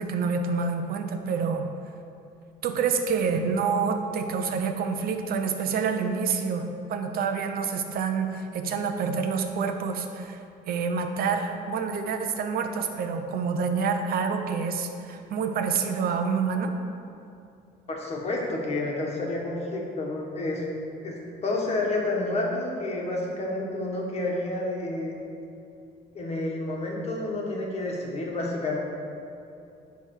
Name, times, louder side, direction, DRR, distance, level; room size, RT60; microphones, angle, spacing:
voice 1, 0.0-1.7 2.6-16.7, right 5 dB, 60° right, 6 dB, 0.8 m, -27 dB
voice 2, 17.9-20.6 21.0-25.1 26.1-28.8, left 2 dB, 40° left, -2 dB, 1.7 m, -29 dB
9.8 x 3.5 x 6.4 m, 2.6 s
cardioid pair, 110°, 17 cm